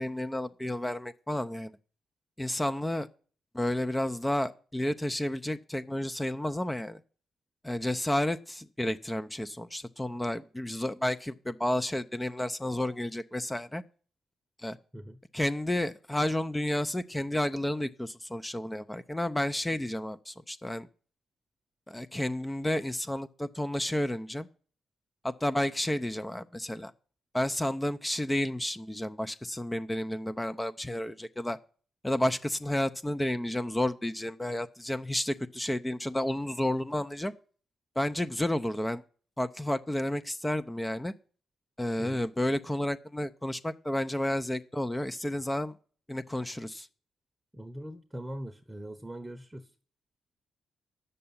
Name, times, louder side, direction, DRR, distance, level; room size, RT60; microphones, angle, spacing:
voice 1, 0.0-1.7 2.4-3.1 3.5-7.0 7.6-13.8 14.6-14.8 15.3-20.9 21.9-24.5 25.2-26.9 27.3-31.6 32.0-37.3 38.0-39.0 39.4-41.1 41.8-45.7 46.1-46.9, left 1 dB, 15° left, 0.6 m, -31 dB
voice 2, 47.5-49.6, right 1 dB, 15° right, 0.9 m, -41 dB
8.5 x 6.8 x 8.6 m
hypercardioid pair, 40°, 0 cm